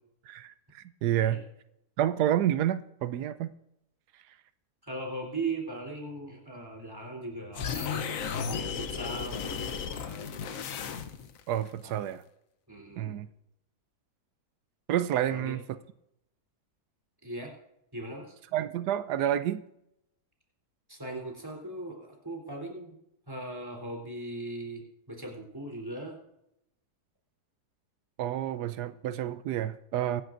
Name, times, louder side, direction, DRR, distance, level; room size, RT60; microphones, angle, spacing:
voice 1, 0.3-1.4 2.0-3.5 4.3-4.4 11.5-12.2 13.0-13.3 14.9-15.6 18.5-19.6 28.2-30.2, right 11 dB, 90° right, 13 dB, 1.2 m, -29 dB
voice 2, 4.8-10.6 11.8-12.1 12.7-13.2 15.2-15.6 17.2-17.5 17.9-18.4 20.9-23.0 23.3-26.2, right 2 dB, 15° right, -1 dB, 3.4 m, -39 dB
sound 1, 7.5-11.4, left 7 dB, 60° left, 1.2 m, -34 dB
23.0 x 11.0 x 2.6 m, 0.81 s
omnidirectional pair, 1.7 m